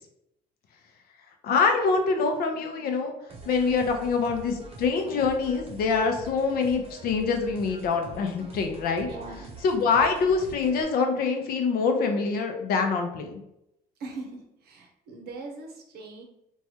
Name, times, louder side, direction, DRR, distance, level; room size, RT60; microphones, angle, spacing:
voice 1, 1.4-3.1 3.5-13.4, left 4 dB, 65° left, 4 dB, 0.6 m, -25 dB
sound 1, 3.3-10.8, right 2 dB, 35° right, 0.6 m, -45 dB
voice 2, 9.1-9.6 14.0-16.2, right 3 dB, 70° right, 2 dB, 0.7 m, -41 dB
3.1 x 2.3 x 2.8 m, 0.80 s
cardioid pair, 110°, 17 cm